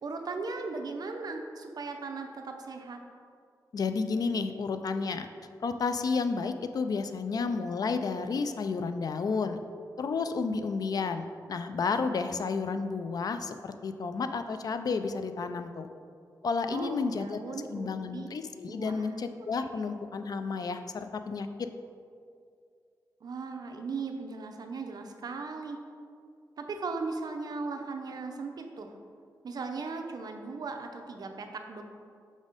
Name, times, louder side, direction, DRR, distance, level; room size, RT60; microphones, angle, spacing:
voice 1, 0.0-3.0 16.7-18.3 18.7-19.1 19.6-19.7 23.2-25.8 26.6-28.9 29.4-31.8, right 4 dB, 65° right, 4 dB, 0.6 m, -38 dB
voice 2, 3.7-5.3 5.6-9.6 10.0-15.9 16.4-17.4 17.7-21.5, left 4 dB, 60° left, 9 dB, 0.4 m, -31 dB
6.1 x 4.1 x 5.0 m, 2.3 s
wide cardioid pair, 100°, 7 cm